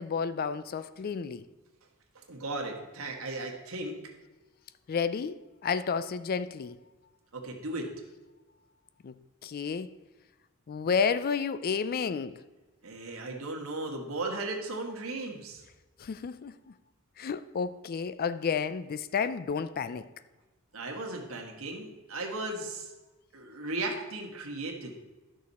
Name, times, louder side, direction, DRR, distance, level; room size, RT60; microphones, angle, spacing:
voice 1, 0.0-1.5 4.9-6.8 9.0-9.1 9.4-9.9 10.7-12.4 16.0-16.7 17.2-20.1, left 6 dB, 45° left, 0.4 m, -31 dB
voice 2, 2.1-3.9 7.3-7.9 12.8-15.6 20.7-22.9 23.3-24.9, right 2 dB, 70° right, 1.6 m, -36 dB
11.5 x 6.3 x 4.1 m
head